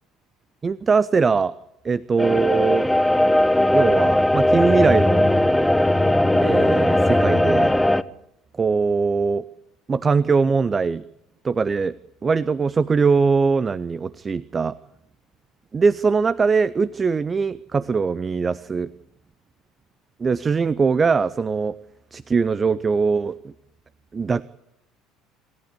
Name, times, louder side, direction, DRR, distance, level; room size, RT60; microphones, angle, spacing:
voice 1, 0.6-1.5 1.8-2.9 3.7-5.3 6.4-7.7 8.6-9.4 9.9-11.0 11.4-11.9 12.2-14.7 15.7-18.9 20.2-21.7 22.1-23.5 24.1-24.4, right 5 dB, 25° right, 19 dB, 0.7 m, -21 dB
sound 1, 2.2-8.0, left 1 dB, 5° left, 1.0 m, -18 dB
27.0 x 14.0 x 8.6 m, 0.84 s
figure-of-eight pair, 60°, 0 cm